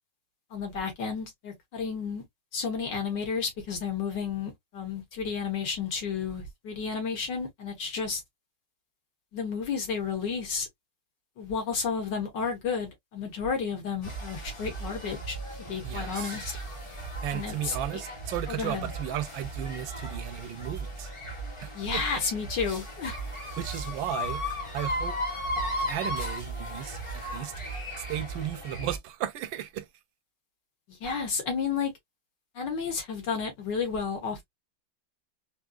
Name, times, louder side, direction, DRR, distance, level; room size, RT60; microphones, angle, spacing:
voice 1, 0.5-2.2 2.5-8.2 9.3-10.7 11.4-16.5 17.3-18.0 18.5-18.9 21.7-23.2 30.9-31.9 32.6-34.5, left 5 dB, 65° left, 2.0 m, -32 dB
sound 1, 14.0-29.0, right 1 dB, 20° left, 0.8 m, -36 dB
voice 2, 15.8-16.4 17.2-21.1 21.6-22.2 23.6-24.4 24.7-25.2 25.9-27.5 28.1-29.9, right 12 dB, 85° right, 1.4 m, -35 dB
3.7 x 2.8 x 2.3 m
omnidirectional pair, 2.1 m